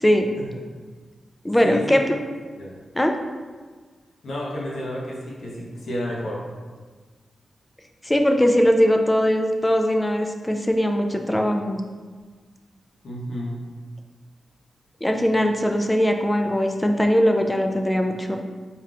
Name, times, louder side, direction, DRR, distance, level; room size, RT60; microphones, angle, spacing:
voice 1, 0.0-0.3 1.4-2.2 2.9-3.1 8.0-11.8 15.0-18.4, equal, 10° left, 4 dB, 0.3 m, -20 dB
voice 2, 1.6-2.0 2.6-2.7 4.2-6.4 13.0-13.5, left 1 dB, 75° left, -4 dB, 1.0 m, -30 dB
4.2 x 2.4 x 3.4 m, 1.5 s
wide cardioid pair, 115°, 0 cm